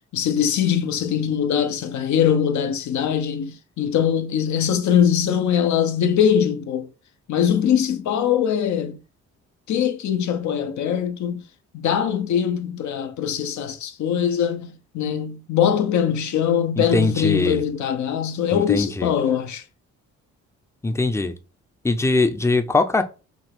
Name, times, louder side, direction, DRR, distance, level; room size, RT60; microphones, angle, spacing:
voice 1, 0.1-6.9 7.3-9.0 9.7-11.4 11.7-14.7 14.9-19.6, left 8 dB, 70° left, 0.8 m, -22 dB
voice 2, 16.8-17.6 18.5-19.1 20.8-21.3 21.8-23.0, left 3 dB, 10° left, 0.5 m, -21 dB
6.0 x 2.3 x 3.5 m
cardioid pair, 90°, 30 cm